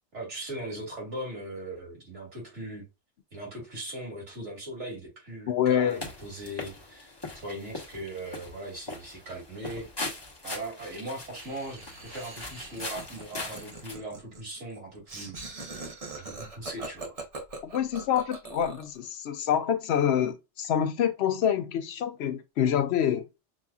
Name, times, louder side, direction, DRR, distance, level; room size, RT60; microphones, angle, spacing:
voice 1, 0.1-2.9 3.3-9.9 10.4-15.4 16.2-17.2, right 1 dB, 85° right, 3.0 m, -39 dB
voice 2, 5.5-6.0 17.6-23.3, left 9 dB, 70° left, 0.8 m, -26 dB
sound 1, 5.9-13.9, left 2 dB, 20° left, 1.2 m, -41 dB
Laughter, 11.4-19.0, right 3 dB, 35° right, 0.9 m, -42 dB
6.1 x 2.8 x 2.3 m
omnidirectional pair, 1.2 m